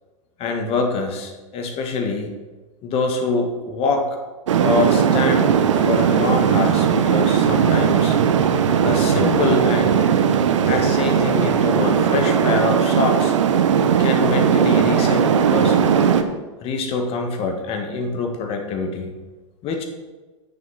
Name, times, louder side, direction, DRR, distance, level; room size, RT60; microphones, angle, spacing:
voice 1, 0.4-2.3 2.8-4.1 4.6-8.2 8.8-10.1 10.7-13.3 14.0-16.0 16.6-19.1 19.6-19.8, left 4 dB, 35° left, 4 dB, 1.7 m, -24 dB
sound 1, 4.5-16.2, right 7 dB, 65° right, 0.9 m, -18 dB
9.9 x 6.6 x 5.6 m, 1.2 s
figure-of-eight pair, 95°, 17 cm